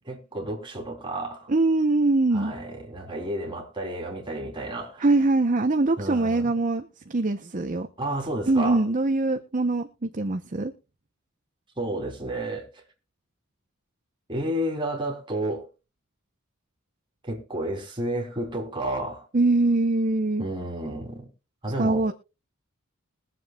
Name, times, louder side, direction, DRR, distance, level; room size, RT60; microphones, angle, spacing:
voice 1, 0.1-1.5 2.3-5.1 6.0-6.5 8.0-8.8 11.8-12.8 14.3-15.7 17.2-19.2 20.4-21.3 21.6-22.1, right 1 dB, 20° right, 3.2 m, -31 dB
voice 2, 1.5-2.5 5.0-7.9 8.5-10.7 19.3-20.4 21.8-22.1, right 2 dB, 40° right, 0.7 m, -23 dB
22.0 x 7.7 x 2.3 m
head